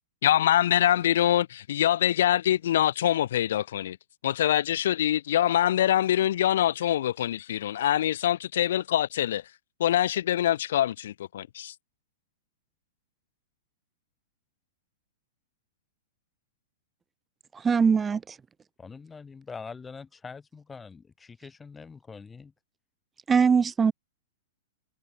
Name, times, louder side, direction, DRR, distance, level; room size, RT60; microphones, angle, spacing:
voice 1, 0.2-4.0 4.2-9.4 9.8-11.7, left 11 dB, 70° left, 0.5 m, -24 dB
voice 2, 17.5-18.4 23.3-23.9, right 6 dB, 15° right, 0.6 m, -22 dB
voice 3, 18.8-22.5, left 5 dB, 15° left, 4.3 m, -44 dB
hypercardioid pair, 135°, 0 cm